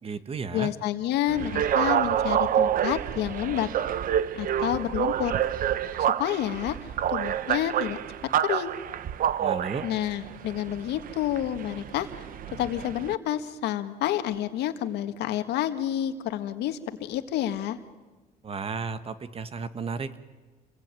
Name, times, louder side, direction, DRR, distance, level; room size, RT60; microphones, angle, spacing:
voice 1, 0.0-0.7 9.4-9.9 18.4-20.2, right 5 dB, 35° right, 12 dB, 1.5 m, -33 dB
voice 2, 0.5-3.7 4.4-5.3 6.2-8.0 8.4-8.7 9.8-17.8, left 12 dB, 80° left, 9 dB, 1.9 m, -29 dB
sound 1, 1.3-13.1, right 10 dB, 55° right, 0.9 m, -28 dB
28.5 x 21.5 x 9.1 m, 1.3 s
cardioid pair, 110°, 17 cm